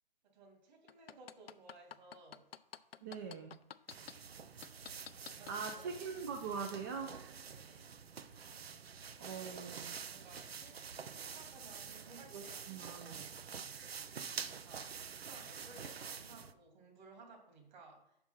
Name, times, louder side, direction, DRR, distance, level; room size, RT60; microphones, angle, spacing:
voice 1, 0.2-2.4 5.2-6.0 7.5-7.9 10.0-10.8 11.0-13.3 14.4-18.2, right 3 dB, 45° right, 2 dB, 2.6 m, -58 dB
sound 1, 0.9-4.1 4.6-5.8 6.3-6.4, left 9 dB, 75° left, 0.5 m, -49 dB
voice 2, 3.0-3.6 5.5-7.2 9.2-10.0 12.3-13.2, right 5 dB, 20° right, 5 dB, 0.4 m, -42 dB
sound 2, 3.9-16.5, right 6 dB, 80° right, 0.6 m, -47 dB
6.0 x 5.1 x 5.6 m, 0.77 s
figure-of-eight pair, 130°, 30 cm